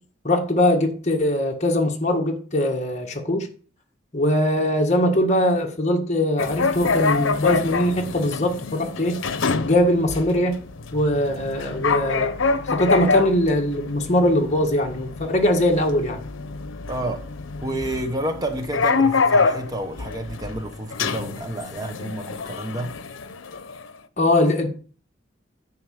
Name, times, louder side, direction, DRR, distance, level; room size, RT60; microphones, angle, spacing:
voice 1, 0.2-3.5 4.1-9.2 9.6-10.6 10.9-12.3 12.7-16.2 24.2-24.7, left 1 dB, 35° left, 1.7 m, -21 dB
sound 1, 6.4-23.9, left 4 dB, 85° left, 0.8 m, -26 dB
voice 2, 16.9-17.3 17.6-22.9, right 1 dB, 20° right, 1.1 m, -30 dB
10.5 x 4.3 x 7.7 m
head